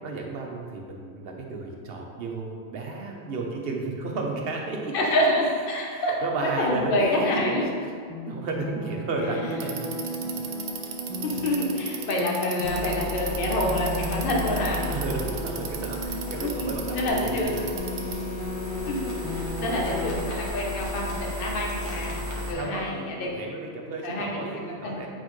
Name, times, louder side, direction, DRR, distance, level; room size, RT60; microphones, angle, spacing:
voice 1, 0.0-4.9 5.7-7.9 8.3-10.0 14.9-17.6 18.3-18.5 22.3-25.1, right 3 dB, 60° right, 0 dB, 1.0 m, -33 dB
voice 2, 4.9-6.2 6.4-7.7 11.2-14.8 16.4-17.6 18.9-22.1 22.5-23.3 24.0-24.3 24.6-25.0, left 1 dB, 55° left, -1 dB, 1.0 m, -27 dB
sound 1, 8.1-20.1, left 1 dB, 30° left, 1.3 m, -35 dB
Bicycle, 9.5-18.3, right 7 dB, 85° right, 0.9 m, -37 dB
sound 2, 12.6-22.5, left 1 dB, 80° left, 1.4 m, -34 dB
8.5 x 4.4 x 3.1 m, 2.1 s
omnidirectional pair, 1.1 m